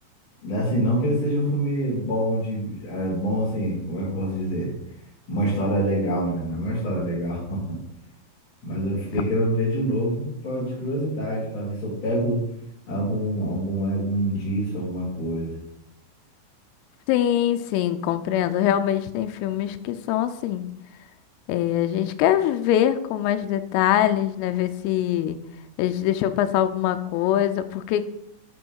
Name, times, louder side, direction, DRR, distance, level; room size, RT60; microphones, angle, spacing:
voice 1, 0.4-4.7 5.3-7.8 8.6-12.4 12.9-15.6, equal, 30° left, -8 dB, 3.4 m, -26 dB
voice 2, 17.1-20.7 21.5-25.4 25.8-28.1, left 11 dB, 90° left, 9 dB, 3.2 m, -23 dB
8.6 x 5.5 x 4.6 m, 0.78 s
omnidirectional pair, 5.8 m